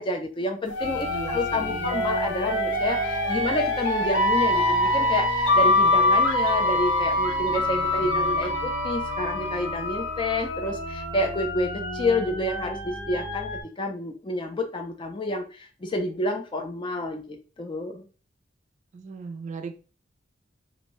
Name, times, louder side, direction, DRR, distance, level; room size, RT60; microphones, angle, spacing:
voice 1, 0.0-18.1, left 2 dB, 25° left, 4 dB, 0.4 m, -29 dB
sound 1, 0.7-10.4, left 1 dB, 85° left, 0.6 m, -24 dB
sound 2, 0.8-13.6, left 1 dB, 55° left, 0.9 m, -34 dB
voice 2, 1.1-1.9 7.7-8.7 18.9-19.7, right 5 dB, 40° right, 6 dB, 0.3 m, -39 dB
2.6 x 2.1 x 3.0 m, 0.36 s
head